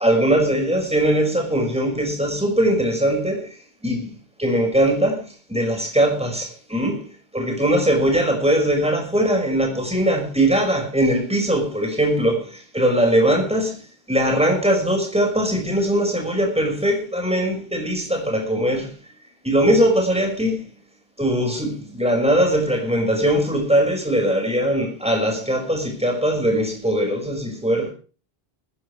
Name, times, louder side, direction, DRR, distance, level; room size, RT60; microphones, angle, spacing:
voice 1, 0.0-3.6 3.8-4.1 4.4-13.8 14.1-19.0 19.4-20.7 21.2-27.9, right 1 dB, 5° right, 5.9 m, -20 dB
20.5 x 13.0 x 3.4 m
omnidirectional pair, 1.1 m